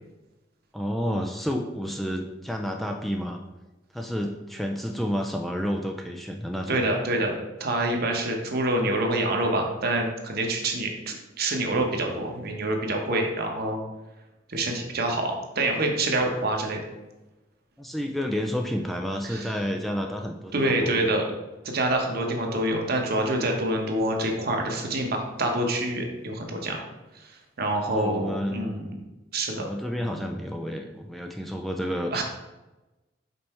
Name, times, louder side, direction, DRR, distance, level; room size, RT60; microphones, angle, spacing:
voice 1, 0.7-3.4 3.9-7.0 17.8-21.2 27.8-28.7 29.6-32.2, equal, ahead, 2 dB, 0.3 m, -30 dB
voice 2, 6.7-7.3 7.6-13.8 14.5-16.8 19.2-19.5 20.5-21.2 21.6-26.8 27.2-27.3 27.6-28.9 29.3-29.7 32.1-32.2, right 1 dB, 55° right, 2 dB, 1.0 m, -26 dB
5.4 x 4.2 x 4.3 m, 1.1 s
head